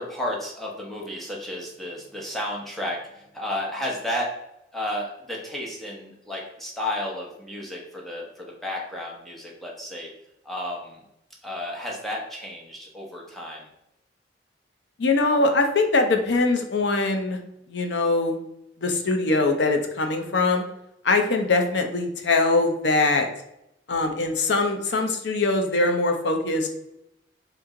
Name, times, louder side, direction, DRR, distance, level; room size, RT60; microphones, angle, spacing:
voice 1, 0.0-4.3 4.7-10.1 10.4-11.0 11.4-13.7, left 1 dB, ahead, -4 dB, 1.0 m, -32 dB
voice 2, 15.0-17.4 17.7-18.4 18.8-20.6 21.0-23.3 23.9-26.7, left 3 dB, 65° left, 4 dB, 0.6 m, -22 dB
3.4 x 3.1 x 3.6 m, 0.83 s
head